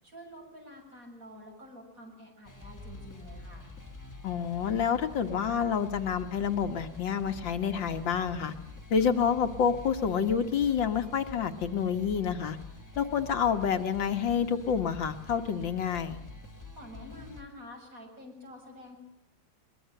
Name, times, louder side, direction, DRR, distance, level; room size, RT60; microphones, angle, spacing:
voice 1, 0.0-3.7 16.7-19.0, left 1 dB, 40° right, 1 dB, 8.1 m, -48 dB
sound 1, 2.4-17.4, left 2 dB, 10° left, 2.2 m, -46 dB
voice 2, 4.2-8.5 8.9-12.6 13.0-16.2, left 7 dB, 70° left, 7 dB, 2.1 m, -28 dB
23.0 x 21.0 x 7.8 m, 0.89 s
omnidirectional pair, 2.1 m